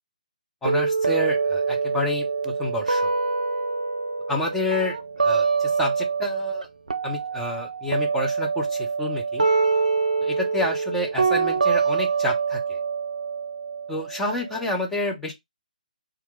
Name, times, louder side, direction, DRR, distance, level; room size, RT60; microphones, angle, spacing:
voice 1, 0.6-3.1 4.3-6.7 7.0-9.5 10.2-12.8 13.9-15.3, left 2 dB, 5° left, 0.6 m, -29 dB
sound 1, 0.6-6.6 6.9-14.7, right 5 dB, 65° right, 0.5 m, -25 dB
2.9 x 2.4 x 3.3 m
figure-of-eight pair, 140°, 5 cm